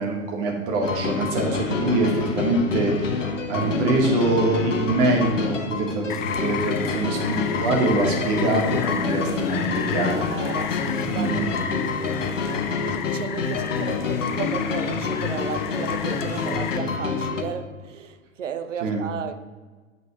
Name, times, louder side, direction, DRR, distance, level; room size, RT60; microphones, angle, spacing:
voice 1, 0.0-10.3 11.1-11.6 18.8-19.0, right 2 dB, 40° right, 0 dB, 2.1 m, -24 dB
sound 1, 0.8-17.4, left 5 dB, 65° left, 1.1 m, -27 dB
Rain, 6.1-16.8, left 9 dB, 35° left, 0.5 m, -34 dB
voice 2, 10.3-19.4, right 7 dB, 65° right, 10 dB, 0.8 m, -35 dB
6.5 x 5.5 x 6.8 m, 1.3 s
figure-of-eight pair, 100°, 40 cm